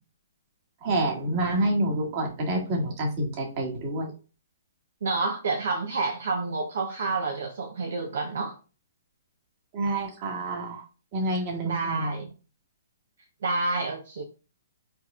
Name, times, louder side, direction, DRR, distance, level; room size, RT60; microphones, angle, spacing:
voice 1, 0.8-4.1 9.7-10.8 11.1-12.2, right 1 dB, 40° right, 1.8 m, -28 dB
voice 2, 5.0-8.6 11.2-11.4 11.6-12.3 13.4-14.2, right 3 dB, 65° right, 0.8 m, -29 dB
4.6 x 4.5 x 2.4 m
hypercardioid pair, 130°, 0 cm